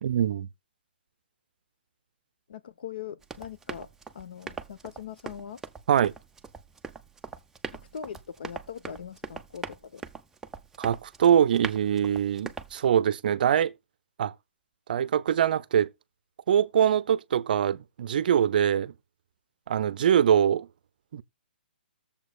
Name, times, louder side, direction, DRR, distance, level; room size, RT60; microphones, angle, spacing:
voice 1, 0.0-0.5 5.9-6.1 10.8-13.7 14.2-14.3 14.9-15.9 16.5-18.9 19.7-20.7 21.1-21.2, right 9 dB, 55° right, 0.6 m, -23 dB
voice 2, 2.5-3.9 4.1-5.6 7.7-10.0, left 8 dB, 60° left, 1.0 m, -41 dB
Run, 3.2-12.9, right 4 dB, 5° right, 0.5 m, -42 dB
19.0 x 7.1 x 2.3 m
hypercardioid pair, 135°, 6 cm